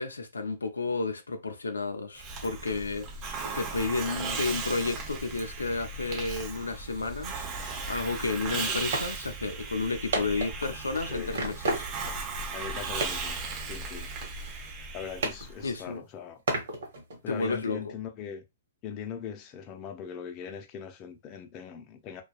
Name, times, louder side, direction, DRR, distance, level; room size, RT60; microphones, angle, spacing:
voice 1, 0.0-11.9 15.6-16.0 17.3-17.9, left 3 dB, 90° left, 0.4 m, -32 dB
Hiss, 2.2-15.7, right 4 dB, 35° right, 0.9 m, -36 dB
sound 1, 8.9-9.1 9.4-9.5 10.1-10.9 11.3-12.2 12.4-12.5 13.0-13.4 13.6-14.9 15.2-16.0 16.5-17.4, right 2 dB, 65° right, 1.0 m, -33 dB
voice 2, 10.9-11.4 12.5-14.1 14.9-16.4 17.2-18.4 18.8-22.2, left 8 dB, 35° left, 0.5 m, -40 dB
2.7 x 2.2 x 2.3 m
hypercardioid pair, 125°, 0 cm